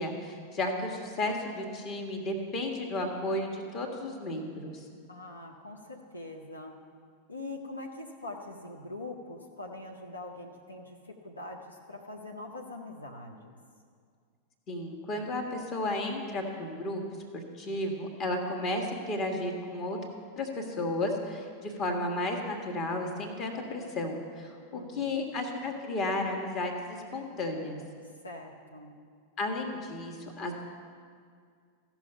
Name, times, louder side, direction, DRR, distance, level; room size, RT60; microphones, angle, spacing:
voice 1, 0.0-4.8 14.7-17.0 17.3-20.0 20.4-27.8 29.4-30.5, left 1 dB, 35° left, 3 dB, 1.5 m, -33 dB
voice 2, 5.1-6.7 7.3-11.0 11.2-13.6 24.7-25.3 28.2-28.9, left 2 dB, 80° left, 1 dB, 0.8 m, -43 dB
15.0 x 6.0 x 5.5 m, 2.1 s
figure-of-eight pair, 90°, 0 cm